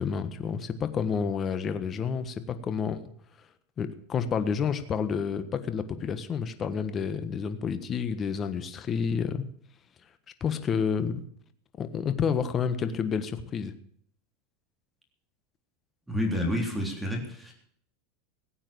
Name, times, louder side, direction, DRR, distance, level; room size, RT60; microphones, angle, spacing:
voice 1, 0.0-3.0 3.8-9.4 10.4-11.2 11.8-13.7, left 6 dB, 25° left, 11 dB, 1.4 m, -29 dB
voice 2, 16.1-17.5, left 1 dB, 5° right, 2 dB, 3.5 m, -29 dB
17.0 x 8.8 x 6.9 m, 0.62 s
supercardioid pair, 140°, 0 cm